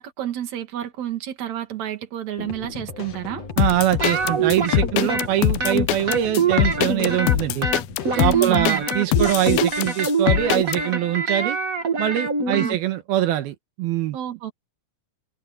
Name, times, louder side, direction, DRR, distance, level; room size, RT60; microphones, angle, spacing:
voice 1, 0.0-3.4 8.1-8.8 12.5-12.8 14.1-14.5, right 11 dB, 50° right, 3.3 m, -29 dB
sound 1, 2.4-8.4, left 6 dB, 45° left, 3.4 m, -37 dB
sound 2, 3.6-10.8, left 15 dB, 90° left, 2.6 m, -22 dB
voice 2, 3.6-7.7 8.1-11.6 12.0-14.2, right 13 dB, 85° right, 3.2 m, -23 dB
sound 3, 4.0-5.3 5.6-7.4 7.6-12.8, right 4 dB, 30° right, 1.6 m, -24 dB
omnidirectional pair, 4.3 m